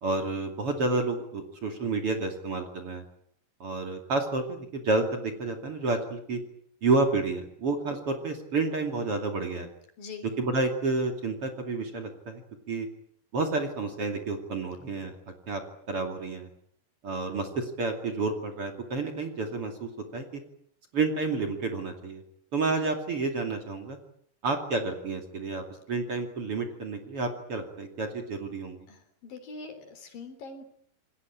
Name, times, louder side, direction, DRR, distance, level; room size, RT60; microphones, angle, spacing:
voice 1, 0.0-3.0 3.6-6.4 6.8-9.7 10.4-12.4 12.7-12.9 13.3-15.1 15.5-15.6 15.9-16.5 17.0-20.4 20.9-22.2 22.5-24.0 24.4-25.6 25.9-28.9, right 3 dB, 40° right, 5 dB, 3.1 m, -30 dB
voice 2, 28.9-30.6, left 4 dB, 65° left, 9 dB, 5.2 m, -43 dB
28.0 x 21.5 x 8.8 m, 0.68 s
omnidirectional pair, 4.4 m